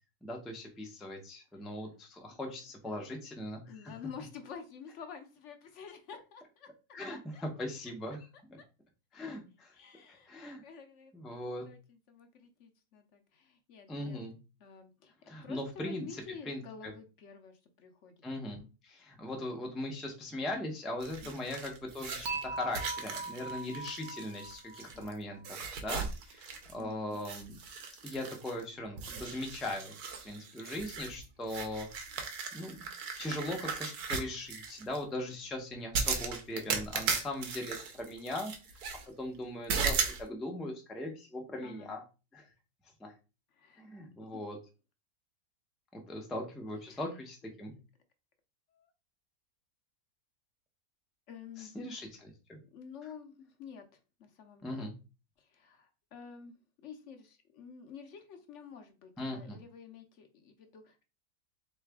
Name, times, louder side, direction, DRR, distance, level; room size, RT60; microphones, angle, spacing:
voice 1, 0.2-3.7 6.9-8.6 9.1-9.7 10.3-10.6 11.1-11.7 13.9-14.4 15.3-16.1 16.5-16.9 18.2-27.6 28.0-29.9 30.2-31.9 32.5-32.9 33.2-38.5 39.2-42.0 42.3-42.4 43.0-43.1 43.8-44.6 45.9-47.7 51.6-52.6 54.6-54.9 59.2-59.6, left 1 dB, ahead, 1 dB, 0.4 m, -39 dB
voice 2, 3.7-6.7 7.1-7.4 9.7-11.1 11.7-14.2 14.6-15.1 15.4-18.1 18.4-18.7 21.2-21.4 24.9-25.3 26.8-27.2 41.6-42.0 43.5-43.8 44.3-44.4 46.8-47.1 48.7-48.9 51.3-51.8 52.7-53.9 54.2-54.9 55.4-61.0, left 6 dB, 60° left, 6 dB, 0.9 m, -50 dB
sound 1, 21.0-25.1 25.4-26.8 27.1-28.6 29.0-35.0 35.9-39.0 39.7-40.2, right 5 dB, 75° right, 1.3 m, -37 dB
Dishes pots and pans / Chink clink, 22.3-25.4, right 3 dB, 60° right, 0.5 m, -41 dB
3.8 x 3.2 x 3.4 m, 0.31 s
omnidirectional pair, 1.6 m